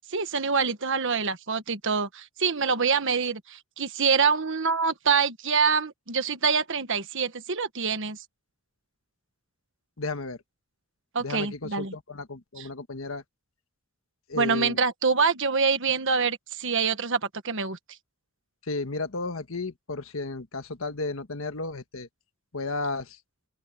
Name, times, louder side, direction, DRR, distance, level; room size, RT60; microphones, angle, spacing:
voice 1, 0.1-8.2 11.1-11.9 12.6-12.7 14.3-17.8, right 5 dB, 65° right, 1.5 m, -25 dB
voice 2, 10.0-10.4 11.2-13.2 14.3-14.8 18.6-22.1 22.5-23.2, left 3 dB, 70° left, 1.5 m, -33 dB
open air
head